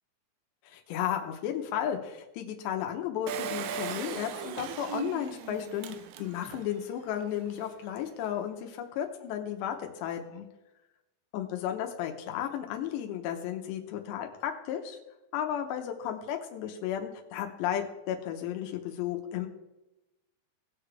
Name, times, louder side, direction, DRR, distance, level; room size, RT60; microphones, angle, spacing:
voice 1, 0.7-10.5 11.3-15.0 15.3-19.5, left 10 dB, 90° left, 4 dB, 3.1 m, -34 dB
Engine, 3.3-6.7 7.2-7.3 7.5-7.6, right 8 dB, 90° right, 2.0 m, -38 dB
19.0 x 6.9 x 3.3 m, 0.96 s
omnidirectional pair, 4.9 m